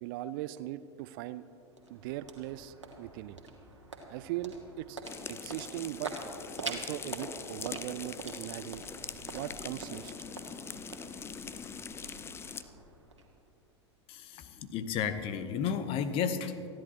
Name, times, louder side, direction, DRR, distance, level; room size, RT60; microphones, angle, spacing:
voice 1, 0.0-1.4 1.9-3.4 4.1-5.0 5.3-6.1 6.6-8.8 9.3-10.1, right 14 dB, 45° right, 15 dB, 0.5 m, -39 dB
sound 1, 1.3-13.7, right 2 dB, 85° right, 1.7 m, -45 dB
sound 2, 5.0-12.6, left 6 dB, 15° left, 0.5 m, -43 dB
voice 2, 14.1-16.7, left 7 dB, 40° left, 11 dB, 0.9 m, -33 dB
29.0 x 10.5 x 2.9 m, 2.7 s
figure-of-eight pair, 85°, 15 cm